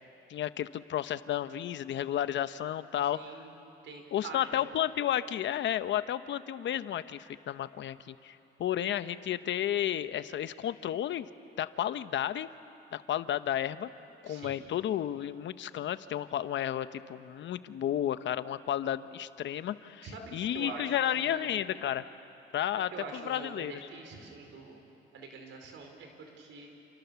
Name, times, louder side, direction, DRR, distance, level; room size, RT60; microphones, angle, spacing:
voice 1, 0.3-3.4 4.1-11.3 11.6-12.5 12.9-13.9 14.2-22.0 22.5-23.9, left 11 dB, 70° left, 13 dB, 0.9 m, -32 dB
voice 2, 3.1-3.5 3.8-4.7 14.2-14.6 20.0-21.8 22.7-24.8 25.1-26.7, right 3 dB, 80° right, 3 dB, 4.7 m, -45 dB
29.0 x 28.5 x 7.0 m, 2.8 s
cardioid pair, 90°, 20 cm